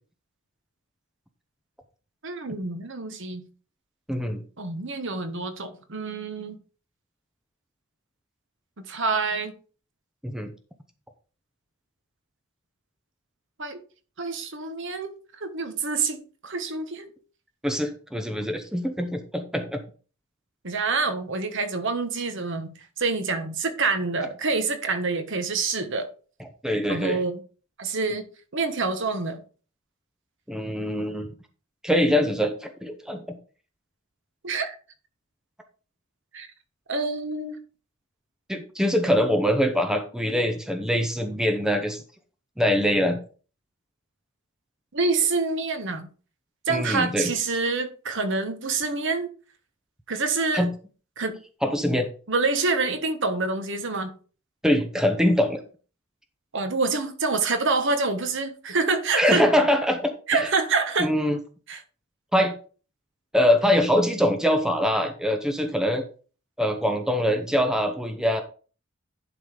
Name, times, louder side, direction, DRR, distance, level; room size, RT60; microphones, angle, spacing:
voice 1, 2.2-3.4 4.6-6.6 8.8-9.5 13.6-13.8 14.2-15.1 15.4-17.1 20.6-26.1 26.9-27.4 27.8-28.3 28.5-29.4 34.4-34.7 36.3-36.5 36.9-37.6 44.9-46.1 46.7-49.3 50.1-50.7 51.2-51.4 52.3-54.1 56.5-59.4 60.3-61.1 61.7-61.8, right 4 dB, 55° right, 1.3 m, -27 dB
voice 2, 4.1-4.4 10.2-10.5 17.6-19.8 26.6-27.2 30.5-31.3 31.8-33.4 38.5-42.0 42.6-43.2 46.7-47.3 50.5-50.7 51.6-52.1 54.6-55.6 59.2-60.5 61.0-61.4 62.3-62.5 63.3-66.0 66.6-68.4, equal, 5° right, 0.8 m, -23 dB
11.0 x 4.0 x 5.1 m
head